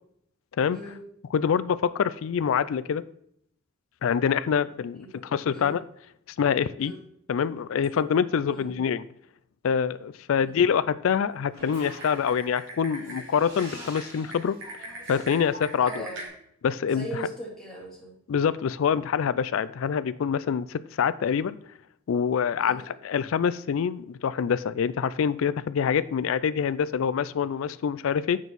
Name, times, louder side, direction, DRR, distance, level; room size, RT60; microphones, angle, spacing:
voice 1, 1.3-3.0 4.0-5.8 6.4-6.9 7.3-9.0 9.6-14.6 15.1-16.1 16.6-17.1 18.3-21.6 22.1-28.4, left 7 dB, 65° left, 16 dB, 0.3 m, -25 dB
voice 2, 5.0-5.7 6.8-7.0 8.5-8.7 10.4-10.5 15.8-16.3 16.9-18.2 22.6-22.9, right 1 dB, 5° left, -6 dB, 3.0 m, -39 dB
Typing, 11.5-16.3, right 1 dB, 60° right, 2.8 m, -41 dB
7.0 x 6.2 x 4.1 m, 0.70 s
head